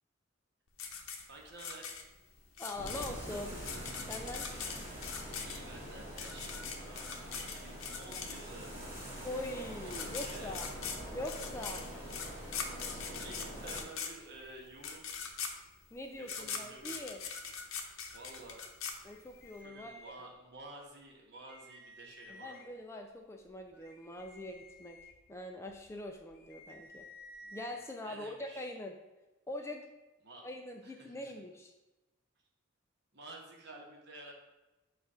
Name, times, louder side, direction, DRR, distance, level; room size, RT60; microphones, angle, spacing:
sound 1, 0.8-8.7 9.6-9.7 9.9-19.5, left 6 dB, 85° left, 0.7 m, -42 dB
voice 1, 1.3-1.9 5.4-7.1 7.4-8.8 9.9-10.5 12.9-15.1 16.2-17.0 18.1-18.6 19.6-22.7 27.4-27.6 28.0-28.7 30.2-30.5 30.8-31.3 33.1-34.3, right 2 dB, 50° right, -1 dB, 1.2 m, -51 dB
voice 2, 2.6-3.6 4.1-4.5 9.2-10.7 11.1-11.8 15.9-17.2 19.0-20.2 22.3-25.0 25.3-27.1 27.5-28.9 29.5-29.9 30.4-31.7, left 1 dB, 15° left, 3 dB, 0.3 m, -43 dB
sound 2, 2.8-13.8, equal, 10° right, 1.4 m, -45 dB
sound 3, 19.0-20.6 21.0-21.1 21.3-22.9 23.4-27.8, left 1 dB, 45° left, 0.7 m, -55 dB
7.0 x 2.5 x 5.5 m, 1.1 s
head